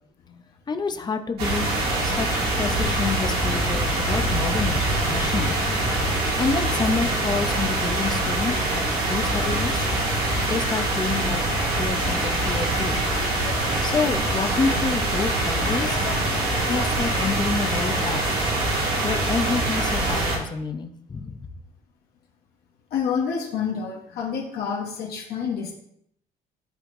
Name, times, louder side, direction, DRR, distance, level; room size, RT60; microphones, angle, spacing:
voice 1, 0.7-5.7 6.4-8.8 9.1-9.9 10.4-11.4 11.8-13.0 13.8-16.3 16.7-18.5 19.0-21.5, left 4 dB, 25° left, 7 dB, 0.7 m, -28 dB
sound 1, 1.4-20.4, right 2 dB, 65° right, 2.4 m, -24 dB
sound 2, 11.6-17.3, left 3 dB, 50° left, 2.1 m, -37 dB
voice 2, 22.9-25.7, left 7 dB, 70° left, -1 dB, 1.1 m, -28 dB
10.5 x 4.4 x 2.6 m, 0.73 s
cardioid pair, 110°, 17 cm